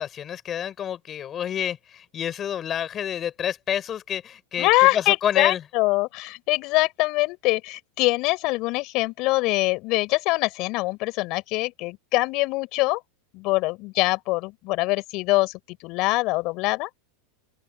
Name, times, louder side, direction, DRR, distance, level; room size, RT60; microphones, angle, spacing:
voice 1, 0.0-5.6, left 9 dB, 30° left, 5.8 m, -28 dB
voice 2, 4.6-13.0 13.3-15.5 15.8-16.9, left 22 dB, 50° left, 5.7 m, -23 dB
hypercardioid pair, 110°, 0 cm